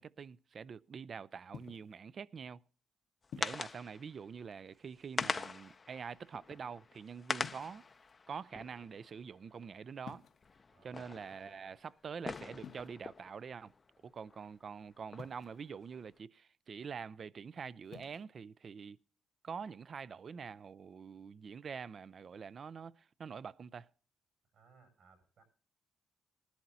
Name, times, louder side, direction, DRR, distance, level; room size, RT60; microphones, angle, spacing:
voice 1, 0.0-2.6 3.3-7.9 8.3-10.2 10.8-13.7 14.0-19.0 19.4-23.9, right 6 dB, 45° right, 0.4 m, -46 dB
sound 1, 1.5-2.0 3.3-3.7 5.1-5.8 7.4-8.1 10.0-10.6 12.6-12.9 15.2-15.7 17.8-18.2, left 7 dB, 65° left, 0.9 m, -51 dB
sound 2, 3.2-4.1 4.5-4.6 4.9-9.7 10.3-14.5 14.9-16.0, left 4 dB, 30° left, 0.5 m, -43 dB
voice 2, 10.7-11.2 24.5-25.5, right 5 dB, 70° right, 7.2 m, -65 dB
19.5 x 11.5 x 2.7 m
cardioid pair, 90°, 0 cm